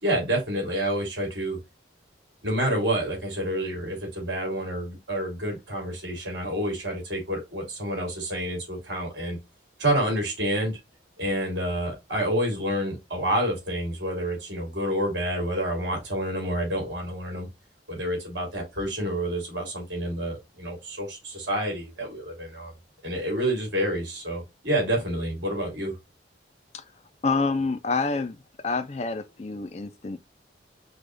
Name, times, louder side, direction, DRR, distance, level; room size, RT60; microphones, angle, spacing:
voice 1, 0.0-1.6 2.4-9.4 9.8-10.8 11.2-17.5 17.9-22.7 23.0-25.9, right 1 dB, 75° right, 2.9 m, -28 dB
voice 2, 27.2-28.4 28.6-30.2, left 4 dB, 35° left, 0.4 m, -27 dB
4.9 x 2.4 x 3.8 m
head